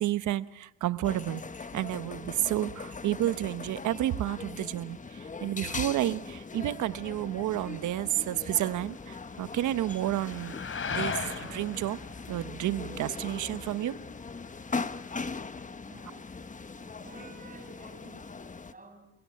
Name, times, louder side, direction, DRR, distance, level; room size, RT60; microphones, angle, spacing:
voice 1, 0.0-10.5 10.9-12.0 12.3-14.0, right 13 dB, 75° right, 15 dB, 1.1 m, -31 dB
sound 1, 1.0-18.7, left 4 dB, 25° left, 1.3 m, -40 dB
sound 2, 5.9-15.7, left 5 dB, 45° left, 3.4 m, -41 dB
voice 2, 15.8-16.4 16.7-19.1, right 2 dB, 25° right, 7 dB, 6.2 m, -52 dB
29.0 x 22.5 x 7.7 m, 0.82 s
cardioid pair, 90°, 30 cm